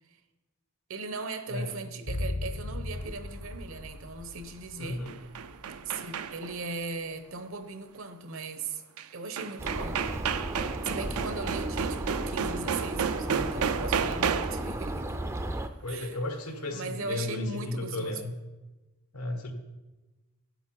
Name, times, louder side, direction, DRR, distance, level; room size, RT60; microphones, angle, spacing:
voice 1, 0.9-5.1 5.9-8.8 9.1-10.0 10.8-15.2 15.9-16.2 16.7-18.2, right 3 dB, 65° right, 9 dB, 0.9 m, -38 dB
sound 1, 2.1-6.3 6.5-6.6, left 1 dB, 60° left, 0.7 m, -37 dB
voice 2, 4.8-5.2 15.8-18.3 19.1-19.5, left 2 dB, 85° left, 5 dB, 1.4 m, -34 dB
sound 2, 4.8-6.6 9.0-9.1 9.4-14.7, right 7 dB, 80° right, 0.5 m, -32 dB
sound 3, 9.6-15.7, right 1 dB, 10° right, 0.4 m, -34 dB
10.5 x 8.1 x 4.6 m, 1.1 s
head